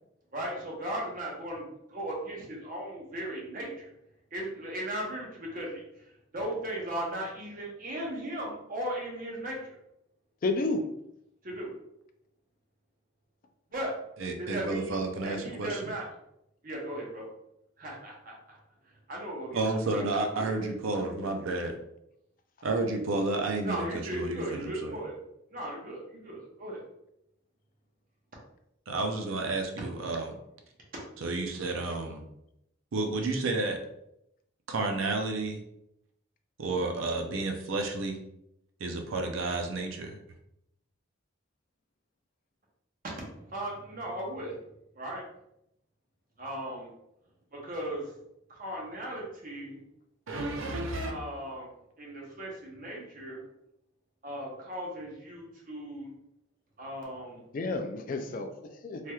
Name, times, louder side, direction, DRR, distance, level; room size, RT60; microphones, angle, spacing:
voice 1, 0.3-3.9 4.3-9.8 11.4-11.7 13.7-13.9 14.4-16.1 16.6-17.3 17.8-18.6 19.1-20.0 20.3-20.6 23.6-25.1 25.5-26.8 43.2-44.6 44.9-45.2 46.4-46.9 47.5-48.1 48.5-49.8 51.0-51.7 52.0-53.4 54.2-56.1 56.8-57.4 59.0-59.1, right 1 dB, 45° right, -2 dB, 0.9 m, -37 dB
voice 2, 10.4-10.8 57.5-59.1, left 2 dB, 45° left, 7 dB, 0.3 m, -31 dB
voice 3, 14.2-15.9 19.5-21.7 22.6-25.0 28.9-30.4 31.2-32.2 32.9-33.8 34.7-35.6 36.6-38.2 38.8-40.2 50.3-51.1, right 2 dB, 80° right, 3 dB, 0.5 m, -31 dB
3.2 x 2.9 x 2.3 m, 0.80 s
head